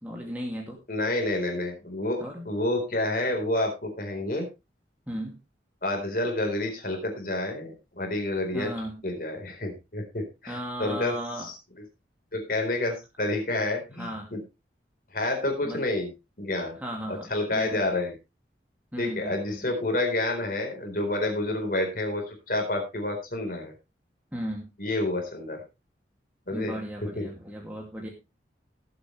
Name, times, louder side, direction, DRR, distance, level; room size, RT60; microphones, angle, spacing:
voice 1, 0.0-0.8 2.2-2.4 5.1-5.4 8.5-9.0 10.5-11.5 14.0-14.3 15.6-15.8 16.8-17.9 18.9-19.7 24.3-24.7 26.5-28.1, equal, 10° right, -1 dB, 2.5 m, -36 dB
voice 2, 0.9-4.5 5.8-8.7 9.0-11.5 12.3-14.4 15.1-16.1 16.4-16.8 17.1-18.2 19.0-23.7 24.8-25.6 26.5-26.7 27.0-27.3, left 2 dB, 50° left, 3 dB, 4.3 m, -29 dB
18.5 x 8.3 x 3.3 m, 0.26 s
head